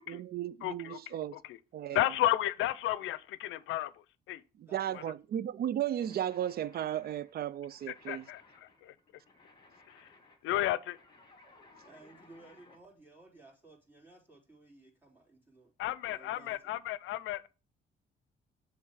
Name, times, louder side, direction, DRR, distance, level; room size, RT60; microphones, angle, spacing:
voice 1, 0.1-1.4 1.7-2.1 4.6-8.3, right 11 dB, 50° right, 0.4 m, -35 dB
voice 2, 0.6-1.0 1.9-3.9 4.3-4.4 8.1-8.4 8.8-8.9 9.9-10.1 10.4-11.0 15.8-17.5, left 14 dB, 85° left, 0.5 m, -32 dB
voice 3, 4.6-5.1 11.8-15.7 16.0-16.8, right 2 dB, 10° right, 3.2 m, -57 dB
sound 1, 5.9-12.8, left 3 dB, 25° left, 2.2 m, -60 dB
7.2 x 3.2 x 4.7 m
cardioid pair, 90°, 20 cm